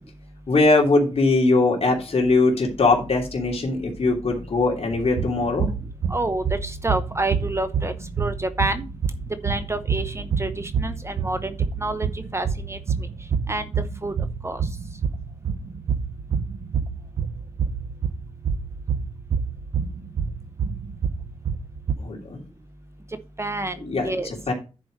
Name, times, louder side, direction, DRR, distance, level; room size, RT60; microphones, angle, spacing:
voice 1, 0.5-5.7 22.0-22.4 23.8-24.5, left 3 dB, 55° left, 0 dB, 3.0 m, -21 dB
sound 1, 4.9-21.9, right 6 dB, 60° right, 0.7 m, -28 dB
voice 2, 6.1-8.8 9.4-11.5 11.8-12.1 12.3-12.8 13.5-13.7 14.0-14.1 14.4-14.6 23.4-23.7 24.0-24.3, right 2 dB, 20° right, 10 dB, 0.8 m, -28 dB
10.5 x 4.9 x 5.0 m, 0.32 s
wide cardioid pair, 105°, 12 cm